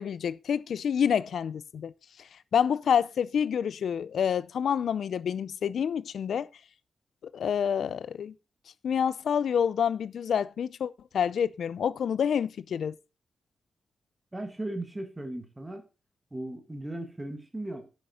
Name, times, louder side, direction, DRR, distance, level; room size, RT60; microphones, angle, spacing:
voice 1, 0.0-1.9 2.2-6.5 7.3-8.3 8.8-12.9, left 8 dB, 70° left, 0.5 m, -28 dB
voice 2, 14.3-15.8 16.3-17.9, right 1 dB, 15° right, 1.7 m, -37 dB
10.5 x 8.0 x 4.2 m
wide cardioid pair, 175°, 0 cm